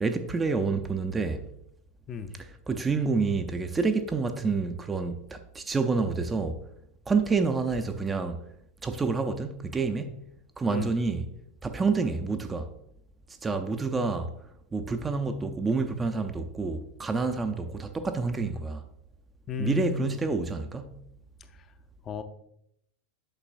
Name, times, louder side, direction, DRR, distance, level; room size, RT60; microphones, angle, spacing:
voice 1, 0.0-1.5 2.3-6.6 7.1-8.4 8.8-10.2 10.6-11.3 11.6-12.7 13.4-14.3 14.7-18.9 19.6-21.0, right 4 dB, 15° right, 0.5 m, -28 dB
voice 2, 19.5-20.2 21.6-21.7 22.0-22.2, left 5 dB, 30° left, 0.5 m, -34 dB
8.7 x 6.0 x 2.5 m
figure-of-eight pair, 90°, 0 cm